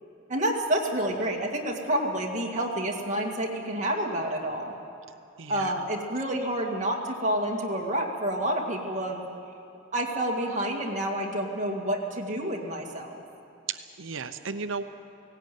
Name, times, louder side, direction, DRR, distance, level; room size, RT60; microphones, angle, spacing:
voice 1, 0.3-4.7 5.5-9.2 9.9-13.2, right 1 dB, 40° right, 0 dB, 2.2 m, -29 dB
voice 2, 5.4-5.7 13.7-14.8, right 5 dB, 75° right, 9 dB, 0.8 m, -34 dB
17.5 x 17.0 x 9.3 m, 2.8 s
head